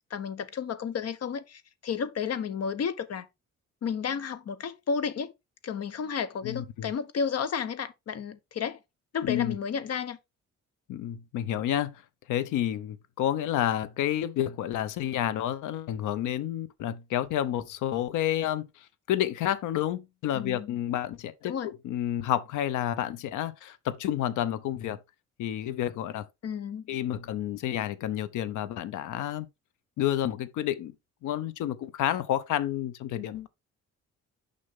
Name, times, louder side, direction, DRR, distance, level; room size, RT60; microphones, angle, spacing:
voice 1, 0.1-3.3 3.8-5.3 5.6-8.8 9.1-10.2 20.3-20.7 21.4-21.7 26.4-26.9, left 6 dB, 55° left, 1.0 m, -32 dB
voice 2, 6.4-6.9 9.2-9.6 10.9-12.0 12.3-18.7 19.1-25.0 25.4-26.2 26.9-29.5 30.0-30.9 31.2-33.5, left 11 dB, 85° left, 0.8 m, -30 dB
6.6 x 5.4 x 3.6 m
cardioid pair, 90°, 30 cm